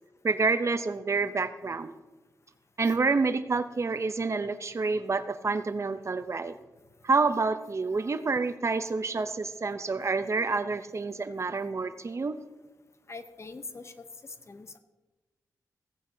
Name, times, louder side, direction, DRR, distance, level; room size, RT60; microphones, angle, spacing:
voice 1, 0.2-1.9 2.8-6.6 7.0-12.4, right 4 dB, 45° right, 11 dB, 0.6 m, -28 dB
voice 2, 13.1-14.0 14.5-14.8, left 3 dB, 45° left, 10 dB, 0.8 m, -43 dB
16.5 x 9.2 x 2.7 m, 1.1 s
cardioid pair, 70°, 7 cm